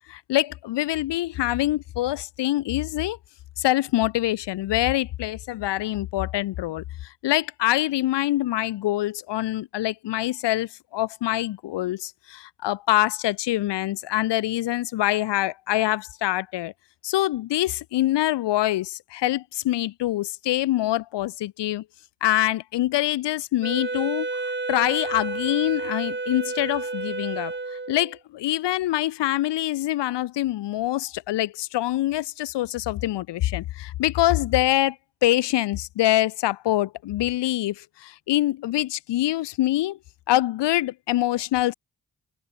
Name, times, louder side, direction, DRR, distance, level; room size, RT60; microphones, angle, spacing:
voice 1, 0.1-3.2 3.6-16.7 17.0-21.8 22.2-24.3 24.7-27.5 27.9-35.0 35.2-40.0 40.3-41.7, left 15 dB, 85° left, 1.1 m, -25 dB
Wind instrument woodwind instrument, 23.6-28.2, right 3 dB, 25° right, 2.4 m, -31 dB
supercardioid pair, 40°, 41 cm